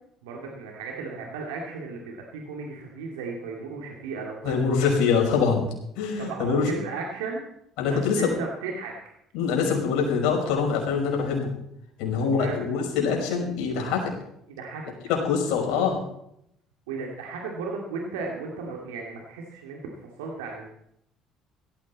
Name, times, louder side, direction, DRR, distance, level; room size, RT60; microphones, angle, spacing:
voice 1, 0.2-4.5 6.2-7.4 7.8-8.9 12.2-12.7 14.5-14.9 15.7-15.8 16.9-20.7, right 4 dB, 85° right, -1 dB, 2.5 m, -35 dB
voice 2, 4.4-5.6 6.0-6.7 7.8-8.3 9.3-11.5 12.0-14.1 15.1-16.0, left 5 dB, 75° left, 1 dB, 5.2 m, -24 dB
17.5 x 14.5 x 4.2 m, 0.75 s
hypercardioid pair, 60°, 0 cm